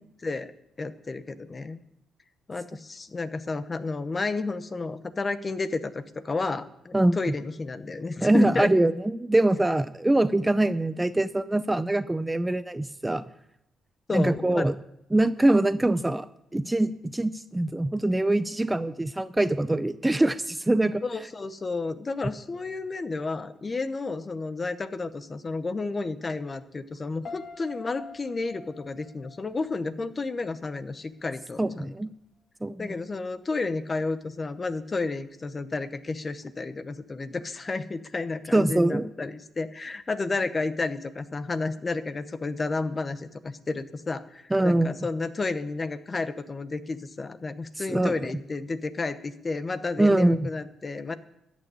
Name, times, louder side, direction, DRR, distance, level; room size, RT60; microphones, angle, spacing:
voice 1, 0.8-1.8 2.5-8.7 14.1-14.7 21.0-31.9 32.8-51.1, left 3 dB, 30° left, 13 dB, 0.9 m, -31 dB
voice 2, 6.9-7.3 8.2-13.2 14.1-14.7 15.1-16.3 16.5-21.0 31.6-32.1 32.6-32.9 38.5-39.1 44.5-44.9 47.9-48.1 50.0-50.5, right 1 dB, 10° right, 13 dB, 0.5 m, -23 dB
Piano, 27.2-30.3 30.6-31.1, left 4 dB, 50° left, 1.8 m, -45 dB
14.0 x 6.3 x 9.5 m, 0.81 s
cardioid pair, 90°, 0 cm